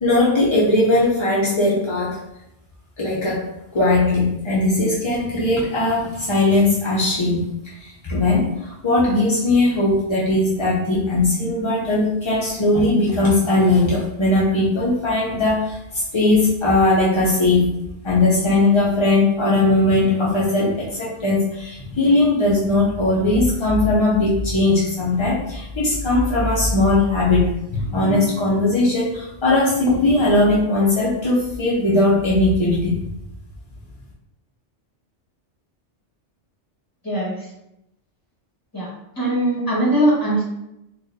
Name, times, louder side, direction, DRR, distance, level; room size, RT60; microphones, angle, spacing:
voice 1, 0.0-2.2 3.0-3.5 3.7-7.4 7.8-17.7 18.0-33.0, left 2 dB, 40° left, -6 dB, 0.4 m, -19 dB
voice 2, 37.0-37.5 38.7-38.9 39.2-40.4, right 1 dB, 20° left, -6 dB, 1.2 m, -20 dB
4.1 x 2.3 x 2.6 m, 0.85 s
omnidirectional pair, 1.2 m